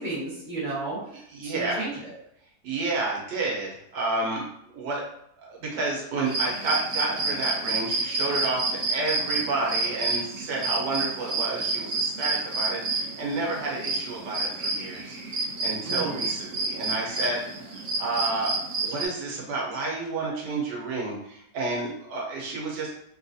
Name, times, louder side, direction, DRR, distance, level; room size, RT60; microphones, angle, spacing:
voice 1, 0.0-2.1 15.8-16.3, right 2 dB, 20° right, -8 dB, 1.2 m, -33 dB
voice 2, 1.3-1.9 2.6-5.0 5.4-17.4 18.0-22.9, right 2 dB, 85° right, -2 dB, 1.4 m, -30 dB
sound 1, 6.3-19.1, right 3 dB, 55° right, 0.9 m, -29 dB
3.4 x 2.3 x 2.6 m, 0.72 s
omnidirectional pair, 1.8 m